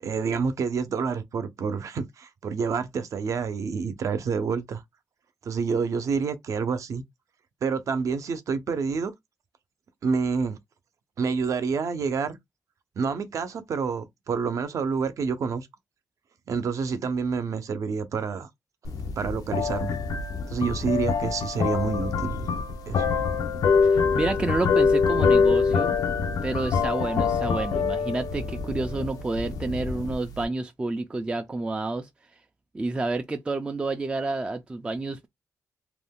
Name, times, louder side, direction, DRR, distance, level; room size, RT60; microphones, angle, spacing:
voice 1, 0.0-4.8 5.4-7.0 7.6-9.1 10.0-10.6 11.2-12.4 13.0-15.7 16.5-18.5 19.2-19.9 20.5-22.5 22.9-23.0, right 5 dB, 60° right, 0.6 m, -28 dB
sound 1, 18.8-30.4, left 5 dB, 80° left, 0.6 m, -25 dB
voice 2, 23.9-26.0 26.4-32.1 32.7-35.3, right 2 dB, 15° right, 0.3 m, -29 dB
2.5 x 2.2 x 3.5 m
wide cardioid pair, 140°, 6 cm